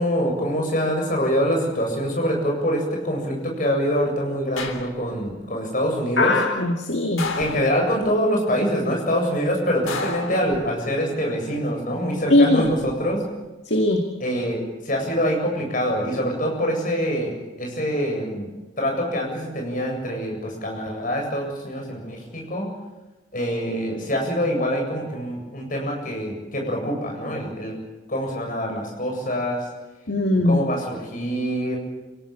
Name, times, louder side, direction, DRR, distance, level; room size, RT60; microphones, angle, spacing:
voice 1, 0.0-6.4 7.4-13.3 14.2-18.5 18.8-22.7 23.3-27.8 28.1-29.7 30.4-31.8, equal, 40° left, 0 dB, 8.0 m, -25 dB
sound 1, 4.6-5.3 7.2-8.1 9.9-11.0 12.4-12.9, left 4 dB, 85° left, 3.4 m, -32 dB
voice 2, 6.2-7.2 12.3-12.6 13.7-14.0 30.1-30.6, left 2 dB, 55° left, 3 dB, 2.2 m, -19 dB
26.5 x 17.5 x 8.9 m, 1.1 s
head